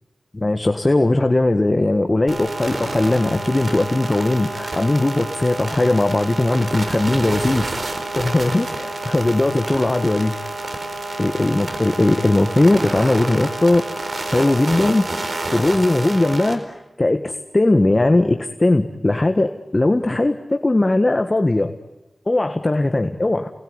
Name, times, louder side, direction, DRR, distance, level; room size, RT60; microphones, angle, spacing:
voice 1, 0.3-7.6 8.2-10.5 11.2-13.8 14.3-15.1 15.5-21.7 22.3-23.5, left 2 dB, 35° left, 7 dB, 1.5 m, -19 dB
sound 1, 2.3-16.5, right 2 dB, 60° right, 4.4 m, -28 dB
28.5 x 20.0 x 9.6 m, 1.1 s
cardioid pair, 45°, 0 cm